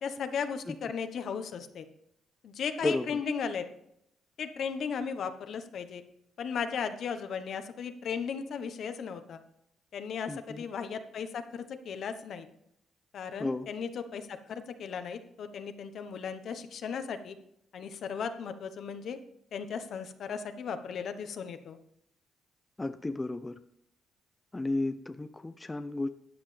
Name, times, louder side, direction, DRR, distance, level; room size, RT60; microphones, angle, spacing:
voice 1, 0.0-1.8 2.4-3.6 4.4-6.0 6.4-9.4 9.9-12.5 13.1-17.3 17.7-19.2 19.5-21.8, left 6 dB, 65° left, 9 dB, 1.1 m, -36 dB
voice 2, 2.8-3.2 10.3-10.6 13.4-13.7 22.8-23.5 24.5-26.1, left 2 dB, 15° left, 9 dB, 0.6 m, -33 dB
13.0 x 9.3 x 3.4 m, 0.78 s
cardioid pair, 90°, 0 cm